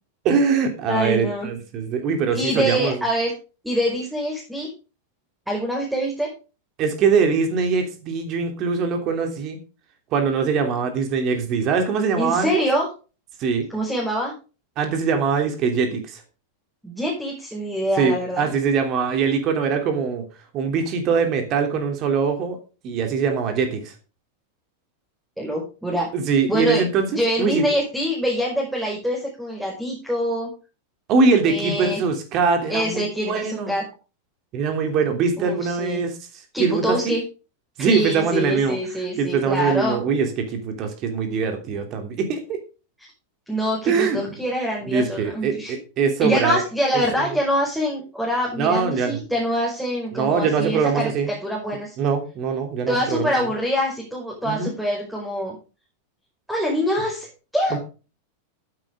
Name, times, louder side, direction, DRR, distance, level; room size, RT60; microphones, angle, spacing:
voice 1, 0.2-3.0 6.8-9.6 10.1-12.6 13.4-13.7 14.8-16.2 18.0-20.2 20.5-22.6 22.8-23.9 26.1-27.1 27.4-27.6 31.1-33.7 34.5-36.2 36.6-37.1 37.8-38.8 39.2-42.6 43.8-44.3 44.8-46.6 48.6-49.2 50.1-51.3 52.0-53.3 54.4-54.7 57.7-57.8, right 5 dB, 35° right, 6 dB, 3.0 m, -22 dB
voice 2, 0.9-1.5 2.3-3.3 3.6-4.7 5.5-6.3 12.2-12.9 13.7-14.3 16.8-18.5 25.4-26.1 26.5-26.8 27.1-30.5 31.5-32.0 32.7-33.9 35.4-36.0 36.5-37.2 37.8-40.0 43.5-45.8 46.2-52.0 52.9-55.6 56.5-57.3 57.5-57.8, equal, 5° right, -2 dB, 5.3 m, -25 dB
14.5 x 9.6 x 3.7 m, 0.33 s
figure-of-eight pair, 90°, 0 cm